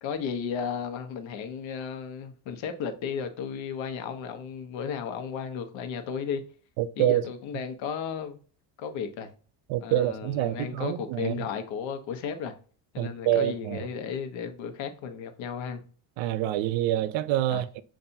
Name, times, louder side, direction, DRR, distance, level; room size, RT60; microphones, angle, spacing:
voice 1, 0.0-6.4 7.0-8.4 8.8-9.3 9.8-12.5 12.9-15.8 17.5-17.8, left 7 dB, 75° left, 1.0 m, -34 dB
voice 2, 6.8-7.2 9.7-11.4 13.0-13.8 16.2-17.8, right 12 dB, 75° right, 0.5 m, -26 dB
6.9 x 2.6 x 2.6 m
cardioid pair, 110°, 47 cm